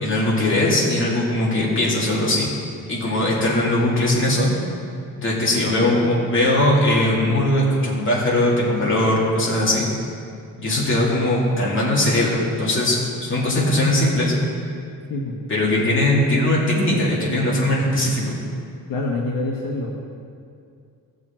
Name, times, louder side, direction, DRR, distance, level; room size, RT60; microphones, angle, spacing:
voice 1, 0.0-2.5 2.9-4.5 5.2-9.9 10.6-14.3 15.5-18.4, left 1 dB, 35° left, -6 dB, 2.5 m, -20 dB
voice 2, 18.9-19.9, left 2 dB, 75° left, -2 dB, 1.2 m, -26 dB
16.0 x 6.8 x 4.4 m, 2.4 s
wide cardioid pair, 180°, 35 cm